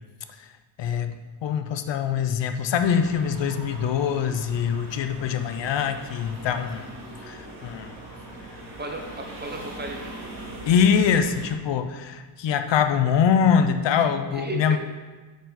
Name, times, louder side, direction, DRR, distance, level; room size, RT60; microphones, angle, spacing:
voice 1, 0.8-6.9 7.2-7.9 10.6-14.8, left 7 dB, 70° left, 8 dB, 0.6 m, -23 dB
sound 1, 2.7-11.6, right 1 dB, 45° right, 2.1 m, -41 dB
voice 2, 8.8-10.0 14.3-14.8, right 2 dB, 20° right, 2 dB, 0.8 m, -34 dB
7.9 x 4.6 x 4.0 m, 1.3 s
wide cardioid pair, 145°, 46 cm